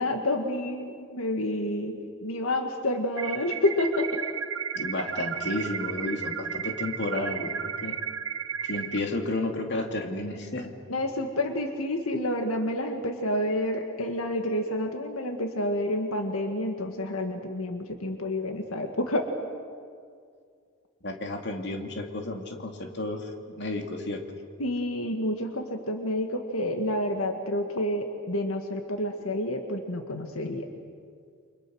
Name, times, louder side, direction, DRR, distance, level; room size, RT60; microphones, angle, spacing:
voice 1, 0.0-4.2 10.9-19.3 24.6-30.7, left 1 dB, 90° left, 5 dB, 1.9 m, -29 dB
sound 1, 3.2-9.0, right 7 dB, 75° right, 1.2 m, -33 dB
voice 2, 4.7-8.0 8.6-10.7 21.0-24.2, left 2 dB, 55° left, 3 dB, 2.7 m, -32 dB
29.5 x 26.0 x 6.4 m, 2.2 s
head